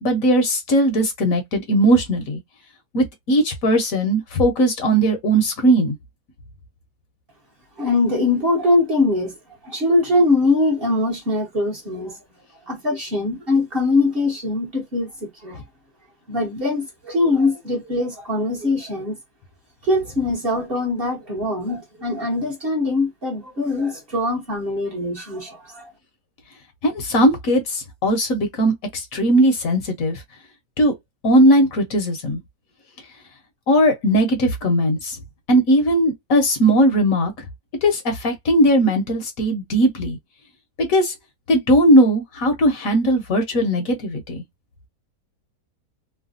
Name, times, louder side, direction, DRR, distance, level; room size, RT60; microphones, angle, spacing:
voice 1, 0.0-2.4 2.9-6.0 26.8-30.2 30.8-30.9 31.2-32.4 33.7-35.2 35.5-37.3 37.8-40.2 40.8-41.1 41.5-44.4, right 1 dB, 65° left, 1.2 m, -18 dB
voice 2, 7.8-9.3 9.6-12.2 12.7-15.6 16.3-19.2 19.8-25.9, left 2 dB, 40° right, 1.1 m, -22 dB
3.2 x 2.2 x 2.5 m
omnidirectional pair, 1.7 m